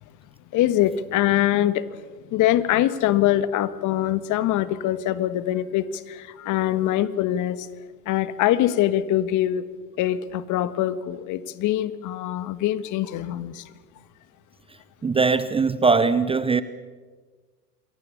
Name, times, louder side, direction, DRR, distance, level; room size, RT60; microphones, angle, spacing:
voice 1, 0.5-2.0 2.3-7.7 8.0-9.6 10.0-13.7, left 13 dB, 40° left, 1.6 m, -23 dB
voice 2, 15.0-16.6, right 4 dB, 10° right, 0.8 m, -20 dB
28.0 x 22.0 x 7.1 m
hypercardioid pair, 90°, 46 cm